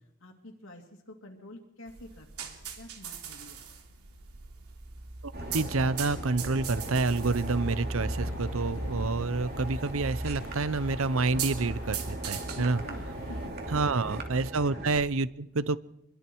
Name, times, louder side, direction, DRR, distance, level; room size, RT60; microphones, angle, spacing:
voice 1, 0.2-3.7 12.5-13.5 14.0-14.2 14.7-14.9, left 1 dB, 65° left, 0 dB, 2.6 m, -48 dB
sound 1, 1.9-14.3, right 8 dB, 90° right, 3.2 m, -42 dB
voice 2, 5.2-12.8 13.7-15.8, right 3 dB, 65° right, 17 dB, 0.7 m, -28 dB
sound 2, 5.3-15.0, right 1 dB, 45° right, 2.9 m, -37 dB
sound 3, 5.4-13.5, left 3 dB, 85° left, 0.9 m, -45 dB
27.0 x 22.0 x 4.6 m, 0.82 s
head